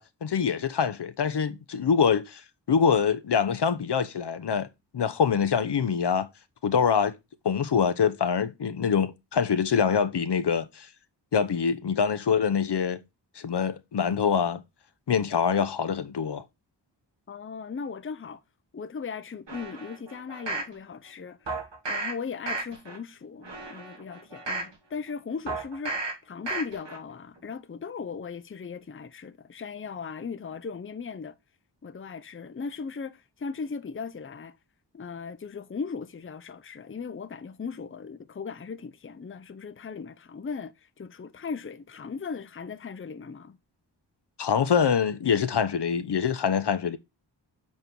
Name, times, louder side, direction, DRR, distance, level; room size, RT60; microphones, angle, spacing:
voice 1, 0.0-2.4 2.7-4.7 4.9-6.3 6.6-7.1 7.4-10.9 11.3-13.0 13.4-14.6 15.1-16.4 44.4-47.0, left 6 dB, 65° left, 0.8 m, -25 dB
voice 2, 17.3-18.4 18.7-26.0 26.2-31.4 31.8-34.6 34.9-43.6, left 5 dB, 30° left, 0.6 m, -38 dB
sound 1, 19.5-20.7 21.5-22.1 22.4-23.0 23.4-24.7 25.5-26.1 26.5-27.0 27.4-27.5, right 3 dB, 70° right, 2.4 m, -33 dB
7.3 x 4.2 x 4.5 m
wide cardioid pair, 55°, 44 cm